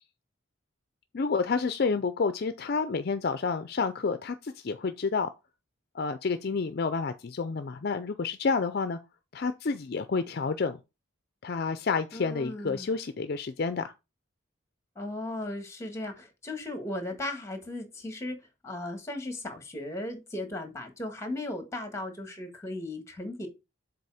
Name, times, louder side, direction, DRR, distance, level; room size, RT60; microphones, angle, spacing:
voice 1, 1.1-5.3 5.9-9.0 9.3-10.8 11.4-13.9, left 4 dB, 50° left, 0.4 m, -29 dB
voice 2, 12.1-12.9 14.9-18.3 18.6-23.5, left 1 dB, 15° left, 1.5 m, -36 dB
6.9 x 4.1 x 4.8 m
head